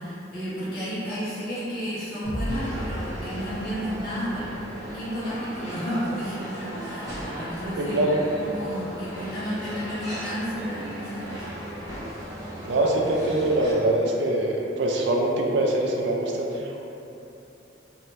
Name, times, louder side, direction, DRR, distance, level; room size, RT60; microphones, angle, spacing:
voice 1, 0.0-4.5 4.9-11.5, equal, 50° left, -11 dB, 0.8 m, -32 dB
sound 1, 2.2-5.5, equal, 25° left, 1.0 m, -36 dB
sound 2, 2.4-13.7, equal, 20° right, 0.7 m, -37 dB
voice 2, 7.8-8.2 12.6-16.8, right 1 dB, 70° right, -1 dB, 0.3 m, -24 dB
2.6 x 2.0 x 3.0 m, 3.0 s
head